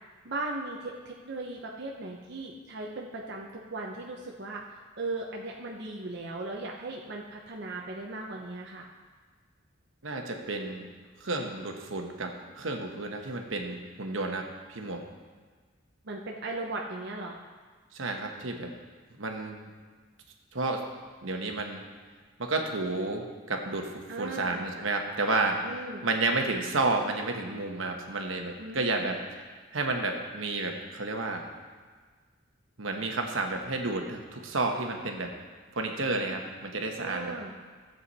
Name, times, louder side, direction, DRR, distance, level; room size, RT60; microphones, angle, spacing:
voice 1, 0.2-4.6 5.0-8.9 16.0-17.4 24.1-24.6 25.6-26.1 28.6-28.8 37.0-37.5, right 2 dB, 60° right, -1 dB, 0.9 m, -37 dB
voice 2, 10.0-10.9 11.2-15.0 17.9-18.7 19.2-19.7 20.5-20.8 21.2-21.8 22.4-31.5 32.8-35.3 35.7-37.4, right 2 dB, 80° right, 3 dB, 1.2 m, -31 dB
14.0 x 7.8 x 4.2 m, 1.5 s
head